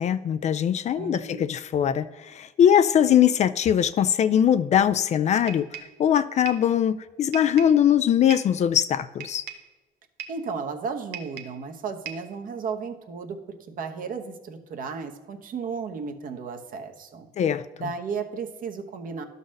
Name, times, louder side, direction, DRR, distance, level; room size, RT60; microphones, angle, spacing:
voice 1, 0.0-5.7 6.0-9.4 17.4-17.9, left 9 dB, 45° left, 12 dB, 0.4 m, -21 dB
voice 2, 1.0-1.5 10.3-13.4 13.7-17.3 17.8-19.2, right 5 dB, 55° right, 5 dB, 1.0 m, -34 dB
sound 1, 5.5-6.0 6.5-6.7 7.3-7.8 8.3-8.6 9.2-9.7 10.2-10.5 11.1-11.6 12.1-12.3, right 8 dB, 90° right, 0.9 m, -39 dB
11.5 x 4.0 x 6.4 m, 1.2 s
cardioid pair, 110°, 17 cm